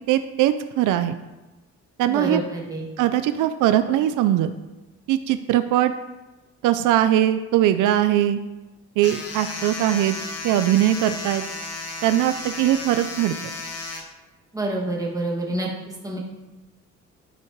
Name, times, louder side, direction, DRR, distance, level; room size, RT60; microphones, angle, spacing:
voice 1, 0.1-1.1 2.0-2.4 3.0-4.5 5.1-5.9 6.6-8.4 9.0-10.2 10.4-11.4 12.0-13.4, right 12 dB, 85° right, 10 dB, 0.5 m, -20 dB
voice 2, 2.1-2.8 14.5-15.7 16.0-16.2, right 2 dB, 10° right, -4 dB, 2.2 m, -27 dB
sound 1, 9.0-14.0, left 3 dB, 50° left, 1.4 m, -34 dB
12.5 x 5.0 x 3.1 m, 1.1 s
cardioid pair, 90°, 30 cm